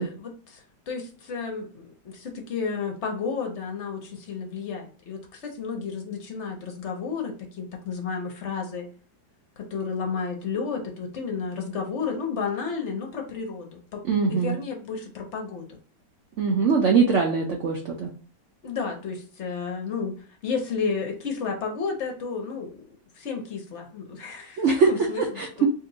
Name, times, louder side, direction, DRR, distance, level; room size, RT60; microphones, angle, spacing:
voice 1, 0.0-8.9 9.6-15.8 18.6-20.2 20.4-22.8 23.2-25.7, left 5 dB, 60° left, 2 dB, 0.7 m, -32 dB
voice 2, 14.1-14.6 16.4-18.1 24.6-24.9 25.2-25.7, right 5 dB, 85° right, 1 dB, 0.6 m, -22 dB
2.9 x 2.6 x 3.8 m, 0.41 s
omnidirectional pair, 2.0 m